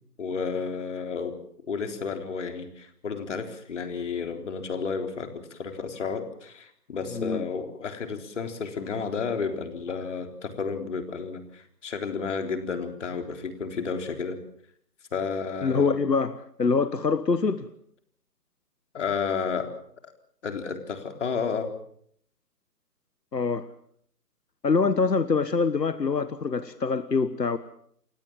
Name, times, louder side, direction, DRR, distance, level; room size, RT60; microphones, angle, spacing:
voice 1, 0.2-1.4 1.7-14.4 15.1-16.0 18.9-19.7 20.0-20.1 20.4-21.7, left 5 dB, 45° left, 6 dB, 3.9 m, -32 dB
voice 2, 7.1-7.4 15.6-17.7 23.3-23.7 24.6-27.6, left 4 dB, 80° left, 13 dB, 1.4 m, -24 dB
29.5 x 16.5 x 7.4 m, 0.67 s
figure-of-eight pair, 145°, 48 cm